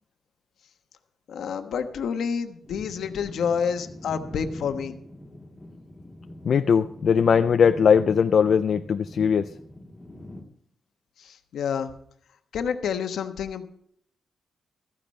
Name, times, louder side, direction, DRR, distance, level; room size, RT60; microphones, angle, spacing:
voice 1, 1.3-5.0 11.2-11.9 12.5-13.7, left 7 dB, 80° left, 1.2 m, -28 dB
sound 1, 2.6-10.4, left 1 dB, 15° left, 2.1 m, -43 dB
voice 2, 6.5-9.5, left 6 dB, 55° left, 0.4 m, -20 dB
15.0 x 14.0 x 3.2 m
wide cardioid pair, 145°, 0 cm